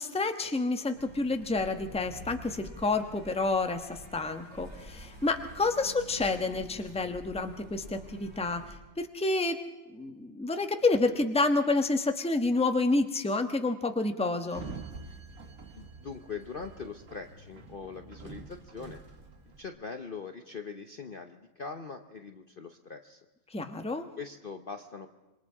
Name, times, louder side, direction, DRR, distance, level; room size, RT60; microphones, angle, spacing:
voice 1, 0.0-9.6 9.9-14.6 23.5-24.1, left 3 dB, 5° left, 6 dB, 1.0 m, -29 dB
sound 1, 0.9-8.8, right 1 dB, 50° right, 5.6 m, -48 dB
Sliding door, 14.4-19.6, right 4 dB, 65° right, 2.3 m, -46 dB
voice 2, 15.7-19.0 19.6-23.2 24.2-25.1, left 5 dB, 40° left, 6 dB, 0.9 m, -42 dB
26.5 x 22.5 x 4.8 m, 1.1 s
omnidirectional pair, 1.7 m